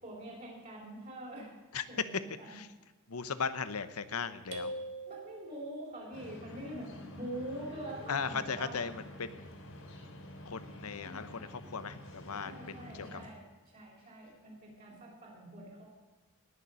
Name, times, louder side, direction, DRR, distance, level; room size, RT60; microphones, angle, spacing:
voice 1, 0.0-1.5 1.9-2.6 5.1-8.8 12.4-13.4 13.7-15.8, right 1 dB, 40° right, -5 dB, 4.5 m, -44 dB
voice 2, 3.1-4.7 8.1-9.5 10.5-13.2, left 5 dB, 85° left, 12 dB, 0.9 m, -38 dB
sound 1, 4.5-6.0, right 1 dB, 55° right, 2.0 m, -42 dB
sound 2, 6.1-13.3, left 1 dB, 65° left, 3.7 m, -48 dB
19.5 x 7.0 x 6.4 m, 1.2 s
head